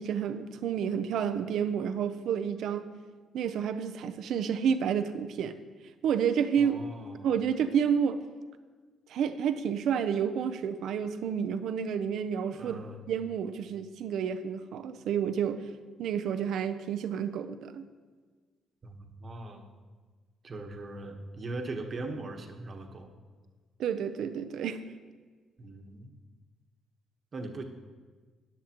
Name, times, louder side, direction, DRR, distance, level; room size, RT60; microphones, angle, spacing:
voice 1, 0.0-2.9 3.3-5.6 6.0-6.8 7.2-8.2 9.1-12.8 13.1-15.6 16.0-17.8 23.8-24.8, right 7 dB, 75° right, 10 dB, 0.6 m, -30 dB
voice 2, 6.6-7.3 12.5-13.1 18.8-19.7 20.4-23.1 25.6-26.1 27.3-27.6, right 2 dB, 40° right, 4 dB, 1.2 m, -40 dB
13.5 x 10.0 x 3.0 m, 1.5 s
cardioid pair, 90°, 0 cm